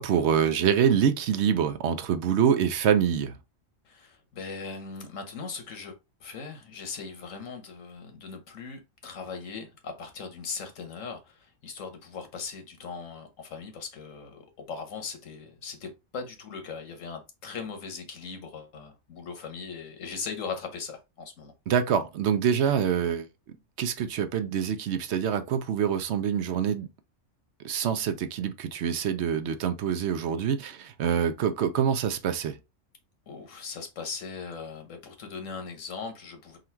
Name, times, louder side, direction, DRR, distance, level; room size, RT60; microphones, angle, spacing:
voice 1, 0.0-3.3 21.7-23.3 23.8-26.9 27.6-32.6, right 8 dB, 65° right, 0.8 m, -25 dB
voice 2, 3.8-21.5 33.3-36.6, left 5 dB, 85° left, 1.4 m, -39 dB
3.8 x 2.4 x 4.4 m
omnidirectional pair, 1.3 m